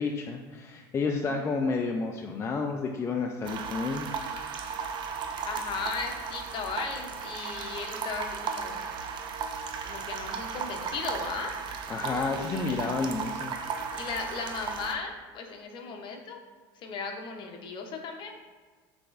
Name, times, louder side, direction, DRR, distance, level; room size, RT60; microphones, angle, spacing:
voice 1, 0.0-4.1 11.9-13.5, left 4 dB, 25° left, 2 dB, 0.4 m, -30 dB
sound 1, 3.4-14.9, right 6 dB, 45° right, 0.5 m, -35 dB
voice 2, 5.4-8.9 9.8-11.5 12.0-12.8 13.8-16.4 16.8-18.3, left 5 dB, 45° left, 3 dB, 0.8 m, -37 dB
5.9 x 3.4 x 2.5 m, 1.5 s
supercardioid pair, 105°, 11 cm